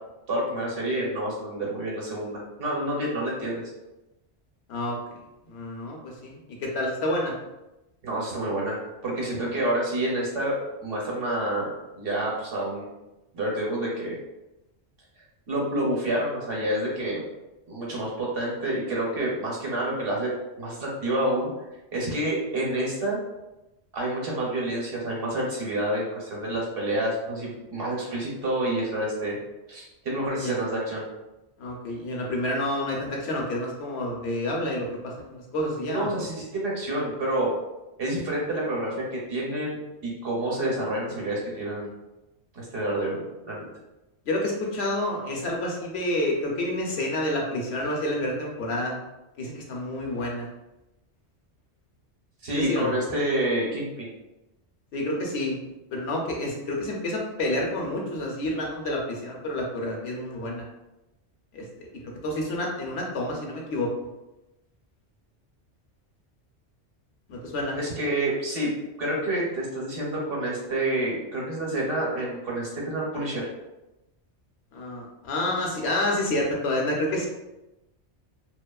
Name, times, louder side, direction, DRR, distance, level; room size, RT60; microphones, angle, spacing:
voice 1, 0.3-3.6 8.0-12.9 13.3-14.2 15.5-17.2 17.7-20.3 20.6-21.5 21.9-23.2 23.9-29.4 29.7-31.0 35.8-37.5 38.0-41.9 42.5-43.7 52.4-54.1 67.7-68.7 69.0-73.5, right 1 dB, 60° right, -3 dB, 0.9 m, -28 dB
voice 2, 4.7-5.1 5.4-7.4 30.4-30.6 31.6-36.1 44.2-48.9 49.4-50.5 52.5-52.9 54.9-55.6 55.9-60.7 61.5-61.9 62.2-63.9 67.3-67.8 74.7-77.3, left 1 dB, 70° left, -1 dB, 0.8 m, -29 dB
2.7 x 2.3 x 2.2 m, 0.98 s
omnidirectional pair, 1.2 m